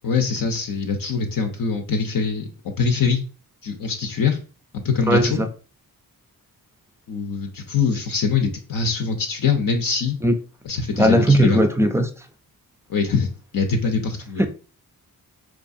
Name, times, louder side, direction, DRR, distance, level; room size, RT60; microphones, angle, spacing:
voice 1, 0.0-2.5 2.8-3.2 3.6-4.4 4.8-5.4 7.1-10.2 10.6-11.6 12.9-13.3 13.5-14.5, left 5 dB, 60° left, 0.7 m, -23 dB
voice 2, 5.1-5.5 10.2-10.3 11.0-12.1 14.4-14.5, right 1 dB, 5° right, 0.4 m, -17 dB
4.6 x 2.4 x 2.6 m
cardioid pair, 70°, 38 cm